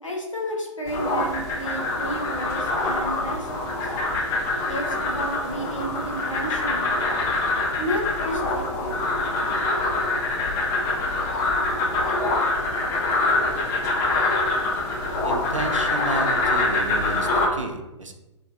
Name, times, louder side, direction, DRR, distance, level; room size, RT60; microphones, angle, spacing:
voice 1, 0.0-3.9 4.7-7.0 7.8-9.0, right 1 dB, 85° left, -1 dB, 0.8 m, -32 dB
sound 1, 0.9-17.5, left 2 dB, 20° left, 0.4 m, -25 dB
voice 2, 15.2-18.1, right 2 dB, 85° right, 5 dB, 0.5 m, -32 dB
4.5 x 2.2 x 2.4 m, 1.0 s
figure-of-eight pair, 120°, 16 cm